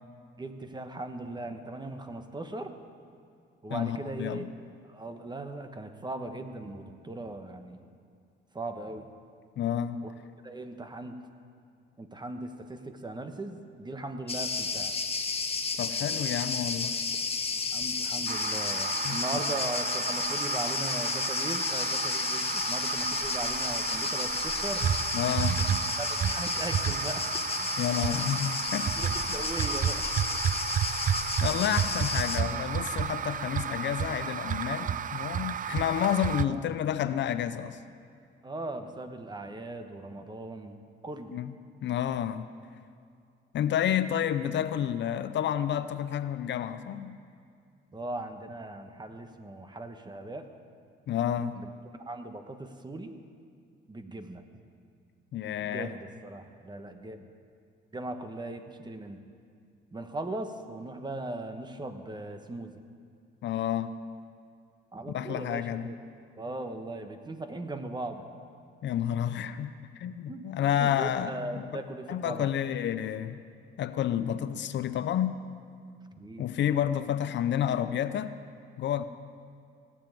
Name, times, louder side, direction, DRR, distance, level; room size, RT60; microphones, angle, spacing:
voice 1, 0.4-2.8 3.6-4.4 4.8-7.8 8.5-9.1 10.0-10.1 10.4-11.2 12.0-15.0 17.7-24.9 26.0-27.2 29.0-30.0 36.4-36.7 38.4-41.3 47.9-50.5 51.5-53.2 53.9-54.4 55.7-57.3 57.9-59.2 59.9-62.7 64.9-66.0 66.4-68.2 70.3-70.4 70.8-72.5 76.2-76.5, right 2 dB, 20° right, 7 dB, 1.2 m, -39 dB
voice 2, 3.7-4.5 9.6-10.0 15.8-17.0 19.0-19.4 25.1-25.6 27.8-28.9 31.4-37.8 41.3-41.5 41.8-42.5 43.5-47.2 51.1-51.6 55.3-55.9 63.4-63.9 65.1-65.9 68.8-71.7 72.1-73.4 73.8-75.4 76.4-78.3 78.8-79.0, left 10 dB, 65° left, 12 dB, 0.6 m, -30 dB
Cricket, 14.3-32.4, left 4 dB, 30° left, 1.2 m, -32 dB
sound 1, 18.3-36.4, right 8 dB, 45° right, 0.5 m, -32 dB
17.5 x 7.3 x 9.2 m, 2.3 s
cardioid pair, 90°, 20 cm